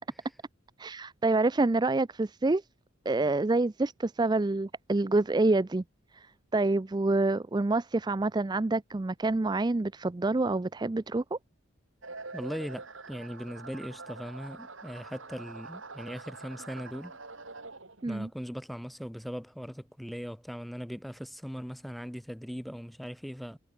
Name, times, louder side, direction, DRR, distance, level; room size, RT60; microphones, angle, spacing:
voice 1, 0.8-2.6 3.1-5.8 6.1-11.4 18.0-18.3, right 2 dB, 20° right, 0.4 m, -27 dB
sound 1, 12.0-18.2, right 3 dB, 60° right, 3.5 m, -45 dB
voice 2, 12.3-17.2 18.1-23.6, equal, ahead, 4.5 m, -39 dB
head